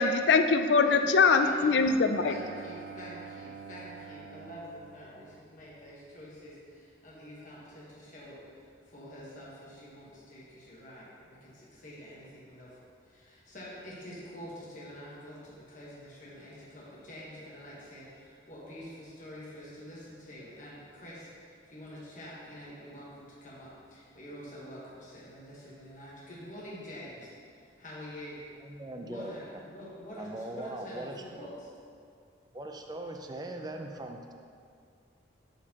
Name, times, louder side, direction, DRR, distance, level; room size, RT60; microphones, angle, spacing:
voice 1, 0.0-2.3, left 4 dB, 65° left, 8 dB, 0.4 m, -23 dB
voice 2, 0.8-1.9 2.2-28.4 29.0-31.7, equal, 45° left, -7 dB, 1.3 m, -47 dB
Bowed string instrument, 1.6-6.0, right 6 dB, 85° right, 0.4 m, -47 dB
voice 3, 28.7-29.3 30.2-31.2 32.5-34.3, right 1 dB, 20° right, 3 dB, 0.4 m, -40 dB
11.5 x 4.4 x 2.9 m, 2.3 s
head